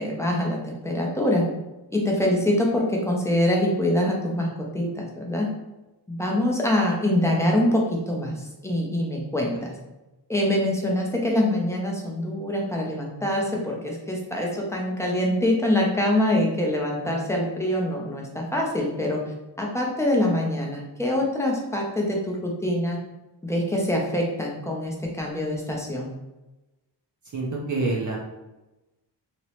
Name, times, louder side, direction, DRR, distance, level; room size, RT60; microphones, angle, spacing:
voice 1, 0.0-1.4 1.9-5.5 6.1-9.7 10.3-19.2 19.6-23.0 23.4-26.1, left 1 dB, 5° left, -2 dB, 0.6 m, -24 dB
voice 2, 27.3-28.2, right 3 dB, 45° right, -3 dB, 0.6 m, -26 dB
3.0 x 2.9 x 2.9 m, 1.0 s
wide cardioid pair, 145°, 42 cm